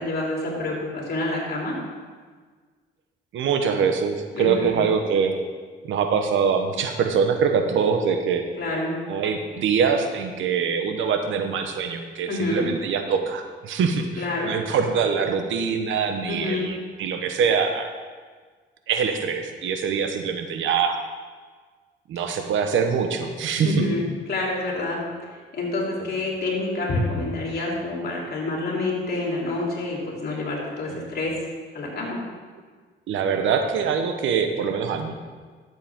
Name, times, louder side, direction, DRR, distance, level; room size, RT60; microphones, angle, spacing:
voice 1, 0.0-1.8 4.3-4.8 8.6-8.9 12.3-12.7 14.2-14.5 16.3-16.7 23.6-24.0 24.3-31.3 31.7-32.2, left 2 dB, 55° left, -3 dB, 3.2 m, -27 dB
voice 2, 3.3-5.4 5.8-8.4 9.1-17.9 18.9-21.0 22.1-23.7 26.0-26.1 30.9-31.1 33.1-35.1, right 6 dB, 75° right, 6 dB, 1.0 m, -24 dB
12.0 x 7.6 x 3.6 m, 1.5 s
cardioid pair, 90°, 20 cm